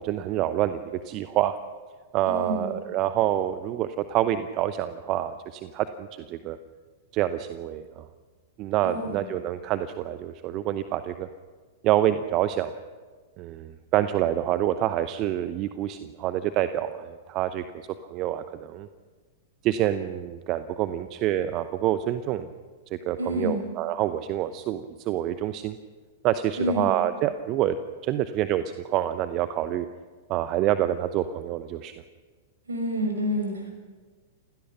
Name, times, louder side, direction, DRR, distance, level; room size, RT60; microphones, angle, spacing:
voice 1, 0.0-1.6 2.1-6.6 7.1-8.1 8.6-11.3 11.8-12.7 13.4-17.6 18.1-18.9 19.6-22.5 22.9-25.8 26.2-27.8 28.0-29.9 30.3-31.9, right 12 dB, 40° right, 12 dB, 0.8 m, -27 dB
voice 2, 2.3-2.8 8.8-9.3 23.2-23.6 26.6-27.0 32.6-33.7, equal, 75° right, 2 dB, 6.4 m, -28 dB
29.0 x 17.0 x 5.8 m, 1.4 s
figure-of-eight pair, 100°, 0 cm